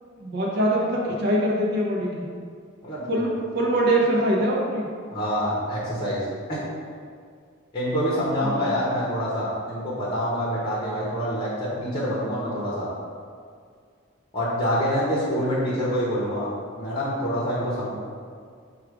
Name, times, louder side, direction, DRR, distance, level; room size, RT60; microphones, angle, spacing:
voice 1, 0.2-2.2 3.1-4.9 8.4-8.8, right 1 dB, 50° right, -3 dB, 0.6 m, -23 dB
voice 2, 5.1-6.6 7.7-12.9 14.3-17.9, equal, 20° left, -7 dB, 0.8 m, -26 dB
4.7 x 2.4 x 4.7 m, 2.1 s
head